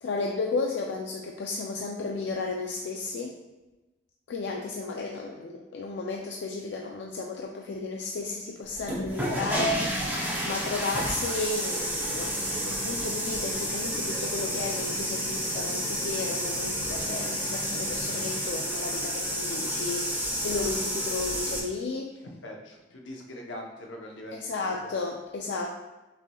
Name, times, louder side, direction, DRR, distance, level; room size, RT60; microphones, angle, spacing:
voice 1, 0.0-3.3 4.3-9.9 10.4-22.1 24.3-25.7, left 3 dB, 70° left, 0 dB, 0.4 m, -33 dB
sound 1, 8.7-21.6, equal, 10° right, 0.6 m, -30 dB
sound 2, 12.0-18.3, equal, 40° right, 1.1 m, -45 dB
voice 2, 22.4-24.5 24.8-24.9, left 1 dB, 90° left, 0 dB, 0.7 m, -42 dB
6.0 x 2.9 x 2.3 m, 1.1 s
head